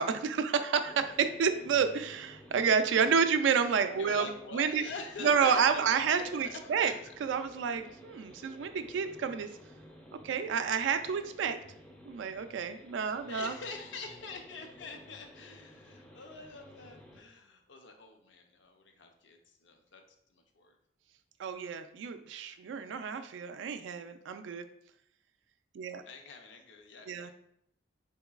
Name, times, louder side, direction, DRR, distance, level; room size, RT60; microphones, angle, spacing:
voice 1, 0.0-4.8 5.2-6.9 7.2-9.5 10.2-11.6 12.1-13.5 21.4-24.6 25.7-26.0 27.1-27.3, right 6 dB, 80° right, 9 dB, 0.3 m, -29 dB
sound 1, 0.9-17.2, left 1 dB, 5° left, 0.4 m, -54 dB
voice 2, 4.0-7.1 13.0-20.0 20.3-20.8 26.1-27.3, left 3 dB, 75° left, 4 dB, 0.5 m, -45 dB
3.8 x 2.8 x 2.3 m, 0.73 s
head